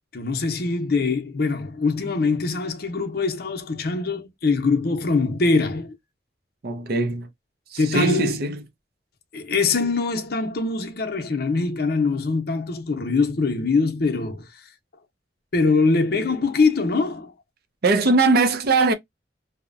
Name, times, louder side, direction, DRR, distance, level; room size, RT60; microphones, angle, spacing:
voice 1, 0.1-6.0 7.8-8.3 9.3-14.5 15.5-17.3, left 4 dB, 60° left, 0.6 m, -23 dB
voice 2, 6.6-7.3 7.7-8.6 17.8-18.9, right 3 dB, 60° right, 0.5 m, -20 dB
2.7 x 2.1 x 2.4 m
head